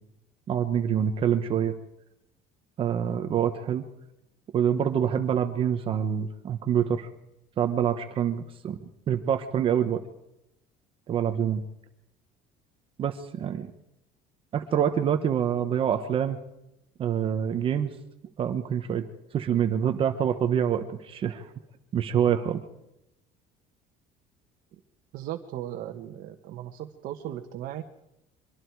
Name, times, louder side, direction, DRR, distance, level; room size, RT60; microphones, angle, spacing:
voice 1, 0.5-1.7 2.8-3.8 4.5-7.1 7.6-8.8 9.1-10.0 11.1-11.6 13.0-13.7 14.5-16.4 17.0-17.9 18.4-19.1 19.3-21.5 21.9-22.6, right 9 dB, 35° right, 7 dB, 1.1 m, -26 dB
voice 2, 25.1-27.8, right 12 dB, 55° right, 4 dB, 1.4 m, -37 dB
24.5 x 24.0 x 4.8 m, 0.86 s
cardioid pair, 175°, 17 cm